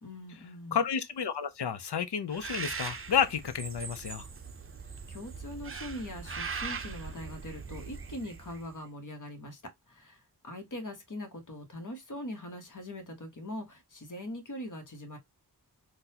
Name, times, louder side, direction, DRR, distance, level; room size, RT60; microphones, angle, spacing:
voice 1, 0.0-0.8 4.9-9.6 9.9-15.2, left 1 dB, 50° left, 1.1 m, -42 dB
voice 2, 0.7-4.3, left 7 dB, 80° left, 0.6 m, -31 dB
Bird, 2.3-8.7, right 5 dB, 35° right, 0.5 m, -40 dB
3.8 x 2.2 x 2.7 m
wide cardioid pair, 60°, 40 cm